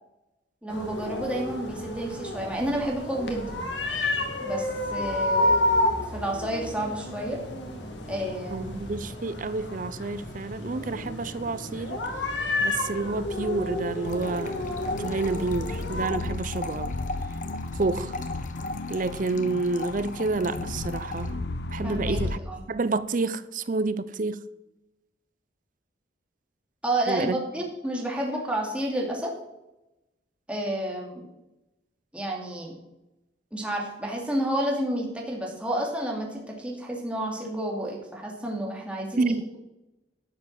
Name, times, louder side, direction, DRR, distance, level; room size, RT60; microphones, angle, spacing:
voice 1, 0.6-3.6 4.4-5.6 6.1-7.4 8.1-8.7 21.8-22.2 22.5-22.6 26.8-29.3 30.5-31.2 32.1-32.8 33.5-39.6, right 1 dB, 5° right, -2 dB, 2.6 m, -30 dB
sound 1, 0.7-16.1, left 1 dB, 80° left, 2.4 m, -30 dB
voice 2, 8.5-12.0 12.6-14.7 15.0-16.9 17.8-18.2 18.9-21.3 21.7-22.4 22.7-24.4 27.1-27.4 39.2-39.4, right 3 dB, 45° right, 15 dB, 0.6 m, -29 dB
sound 2, 13.7-22.4, left 2 dB, 65° left, 0.7 m, -35 dB
sound 3, 14.0-21.3, left 2 dB, 45° left, 1.3 m, -38 dB
12.0 x 7.6 x 7.4 m, 0.93 s
head